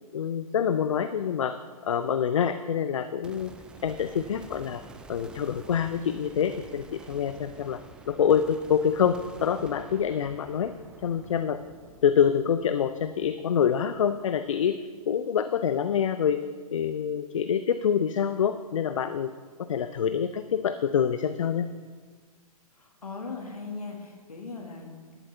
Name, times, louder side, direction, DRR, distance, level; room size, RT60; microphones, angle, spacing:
voice 1, 0.1-3.5 3.8-4.8 5.1-7.8 8.1-10.7 11.0-11.6 12.0-14.8 15.1-16.4 16.7-19.3 19.6-21.7, left 8 dB, 55° left, 11 dB, 0.5 m, -26 dB
sound 1, 3.2-14.6, right 3 dB, 5° right, 0.3 m, -50 dB
voice 2, 22.8-25.2, left 4 dB, 75° left, 2 dB, 1.8 m, -39 dB
14.0 x 12.0 x 3.4 m, 1.5 s
figure-of-eight pair, 120°, 19 cm